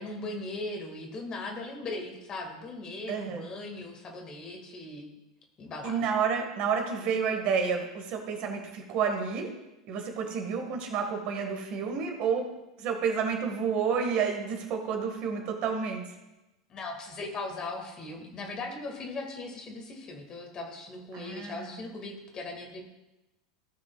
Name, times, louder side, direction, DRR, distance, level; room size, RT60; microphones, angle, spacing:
voice 1, 0.0-5.1 5.6-6.1 16.7-22.8, left 2 dB, 30° left, 2 dB, 1.9 m, -39 dB
voice 2, 3.1-3.4 5.8-9.5 9.9-12.5 12.8-16.0 21.1-21.7, right 6 dB, 45° right, 3 dB, 1.7 m, -30 dB
16.0 x 6.1 x 2.4 m, 0.99 s
figure-of-eight pair, 85°, 3 cm